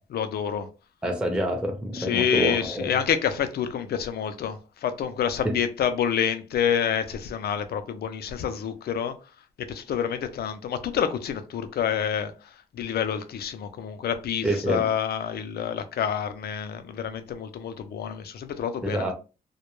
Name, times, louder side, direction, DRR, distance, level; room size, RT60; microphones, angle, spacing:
voice 1, 0.1-0.7 1.9-9.1 9.6-12.3 12.7-19.0, left 8 dB, 75° left, 0.4 m, -28 dB
voice 2, 1.0-3.0 5.4-5.6 14.4-14.9 18.8-19.1, right 1 dB, 5° right, 0.5 m, -27 dB
2.2 x 2.2 x 3.0 m
cardioid pair, 95°, 16 cm